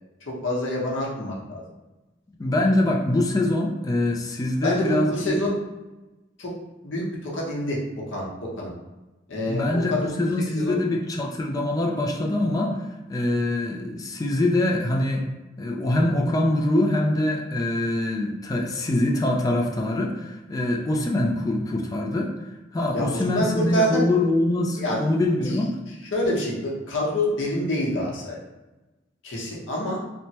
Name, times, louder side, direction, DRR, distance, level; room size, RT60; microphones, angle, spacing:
voice 1, 0.3-1.6 4.6-5.5 6.4-6.5 6.8-7.8 8.1-8.3 8.6-8.7 9.3-10.8 13.3-13.5 22.9-24.1 24.8-25.0 25.4-25.6 26.1-28.4 29.2-30.0, left 1 dB, 85° left, -4 dB, 0.8 m, -27 dB
voice 2, 2.4-5.3 9.5-12.8 13.1-15.2 15.6-22.3 22.7-25.8, left 1 dB, 20° left, 0 dB, 0.3 m, -24 dB
3.0 x 2.2 x 2.8 m, 1.1 s
head